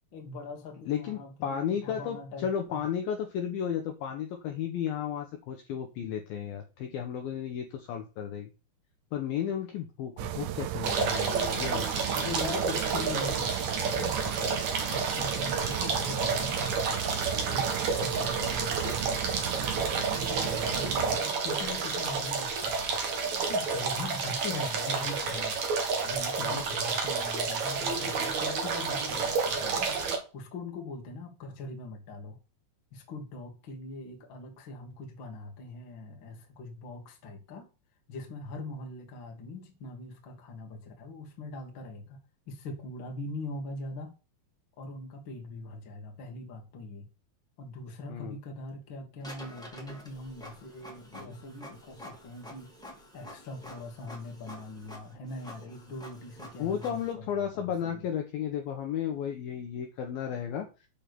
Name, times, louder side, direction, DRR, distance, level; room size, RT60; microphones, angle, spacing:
voice 1, 0.1-2.8 12.2-14.5 14.9-25.6 26.0-32.4 32.9-37.7 38.1-42.2 42.4-44.1 44.8-47.1 47.6-58.1, left 2 dB, 45° left, 1.6 m, -42 dB
voice 2, 0.9-2.2 2.4-8.5 9.1-12.3 18.8-19.0 26.4-26.6 48.1-48.4 56.6-60.7, left 8 dB, 75° left, 2.3 m, -33 dB
sound 1, 10.2-21.2, right 13 dB, 80° right, 3.0 m, -35 dB
sound 2, 10.8-30.2, right 4 dB, 55° right, 2.2 m, -30 dB
Printer, 49.2-57.1, left 1 dB, ahead, 0.8 m, -48 dB
8.7 x 4.6 x 6.8 m
omnidirectional pair, 5.3 m